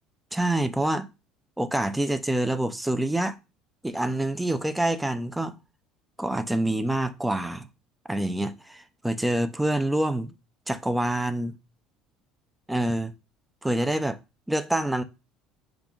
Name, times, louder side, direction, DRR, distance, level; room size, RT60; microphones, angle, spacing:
voice 1, 0.3-1.1 1.6-3.4 3.8-5.5 6.2-7.7 8.1-10.3 10.7-11.6 12.7-13.1 13.6-14.2 14.5-15.0, right 1 dB, 5° right, 0.5 m, -26 dB
4.8 x 2.4 x 3.6 m
supercardioid pair, 90°, 0 cm